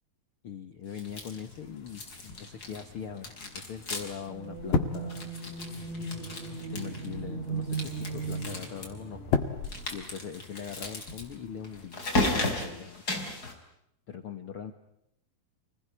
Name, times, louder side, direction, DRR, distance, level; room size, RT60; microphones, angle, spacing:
voice 1, 0.4-5.3 6.7-9.2 9.9-13.6 14.1-14.7, left 7 dB, 55° left, 8 dB, 1.7 m, -41 dB
sound 1, 0.9-1.6 1.9-2.9 3.2-4.3 4.6-4.7 4.9-7.1 7.6-8.9 9.6-13.5, left 2 dB, 25° left, 5.2 m, -35 dB
sound 2, 1.1-11.9, left 5 dB, 85° left, 3.8 m, -38 dB
sound 3, 4.3-10.3, right 4 dB, 75° right, 9.9 m, -38 dB
28.0 x 20.5 x 9.9 m, 0.77 s
omnidirectional pair, 4.1 m